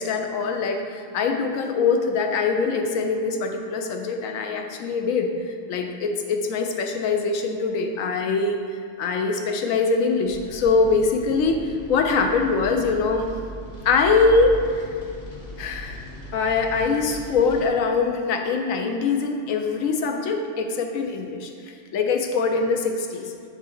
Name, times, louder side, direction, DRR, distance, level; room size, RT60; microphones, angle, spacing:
voice 1, 0.0-8.6 9.0-11.6 11.9-13.2 13.8-14.5 15.6-16.0 16.3-21.5 21.9-23.3, left 4 dB, 80° left, 4 dB, 1.1 m, -23 dB
sound 1, 10.2-17.7, left 1 dB, 35° left, 1.4 m, -38 dB
6.2 x 3.5 x 5.9 m, 2.3 s
omnidirectional pair, 1.4 m